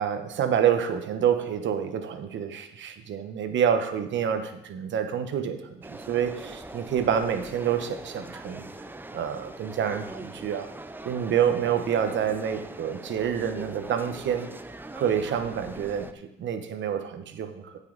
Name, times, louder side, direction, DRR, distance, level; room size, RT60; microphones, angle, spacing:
voice 1, 0.0-8.6 9.1-10.7 11.0-14.5 14.9-17.8, right 8 dB, 70° right, 8 dB, 1.1 m, -27 dB
sound 1, 5.8-16.1, right 2 dB, 10° right, 0.6 m, -42 dB
15.0 x 5.6 x 4.0 m, 0.86 s
cardioid pair, 90°, 20 cm